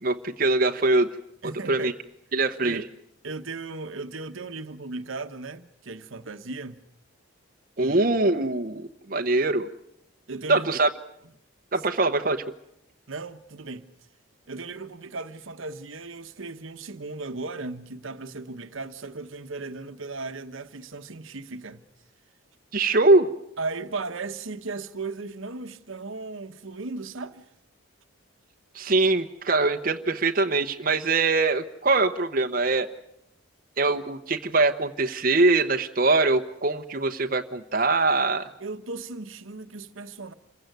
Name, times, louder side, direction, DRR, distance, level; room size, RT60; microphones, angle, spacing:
voice 1, 0.0-1.1 1.4-1.9 2.3-2.8 7.8-9.7 10.5-10.9 11.7-12.4 22.7-23.3 28.7-32.9 33.8-38.5, right 3 dB, 45° right, 1.0 m, -23 dB
voice 2, 1.4-1.9 2.6-2.9 3.2-6.8 7.8-8.0 10.3-10.7 13.1-13.9 14.5-21.8 23.6-27.4 38.6-40.3, right 3 dB, 75° right, 1.1 m, -36 dB
27.0 x 16.0 x 9.3 m
head